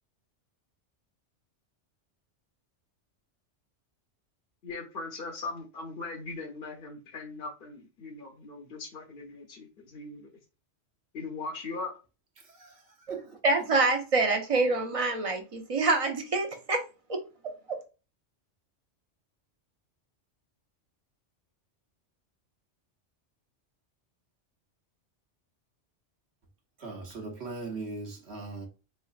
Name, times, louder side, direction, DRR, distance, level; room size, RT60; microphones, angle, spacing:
voice 1, 4.6-10.3 11.1-11.9, left 3 dB, 55° left, 0.8 m, -39 dB
voice 2, 12.4-13.3 26.8-28.7, right 3 dB, 65° right, 1.2 m, -40 dB
voice 3, 13.4-16.8 17.1-17.2 17.7-17.8, right 3 dB, 35° right, 0.6 m, -26 dB
3.7 x 3.2 x 2.4 m
omnidirectional pair, 1.2 m